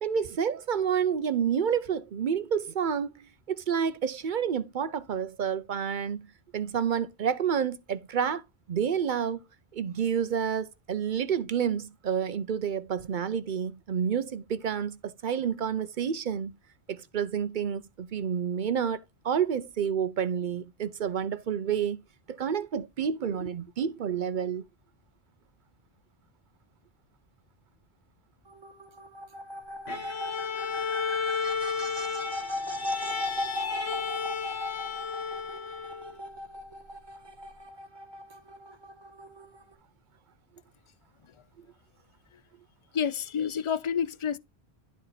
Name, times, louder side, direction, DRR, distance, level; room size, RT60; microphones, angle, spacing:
voice 1, 0.0-6.3 6.5-8.4 8.7-9.4 9.7-16.6 16.9-22.0 22.3-24.6, right 7 dB, 55° right, 0.7 m, -29 dB
sound 1, 28.5-39.7, left 1 dB, 25° right, 1.0 m, -38 dB
Bowed string instrument, 29.9-36.2, left 6 dB, 75° left, 1.7 m, -33 dB
voice 2, 42.9-44.4, left 7 dB, 45° left, 0.4 m, -29 dB
11.5 x 4.2 x 4.0 m
omnidirectional pair, 1.1 m